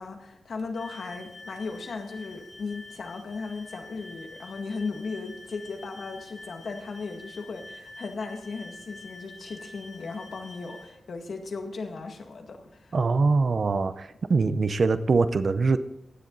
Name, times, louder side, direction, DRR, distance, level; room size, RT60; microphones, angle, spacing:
voice 1, 0.0-12.9, left 4 dB, 65° left, 4 dB, 1.9 m, -36 dB
sound 1, 0.7-10.9, left 2 dB, 40° left, 3.5 m, -47 dB
voice 2, 12.9-15.8, right 4 dB, 50° right, 12 dB, 0.6 m, -23 dB
16.5 x 10.5 x 4.0 m, 0.89 s
wide cardioid pair, 170°, 0 cm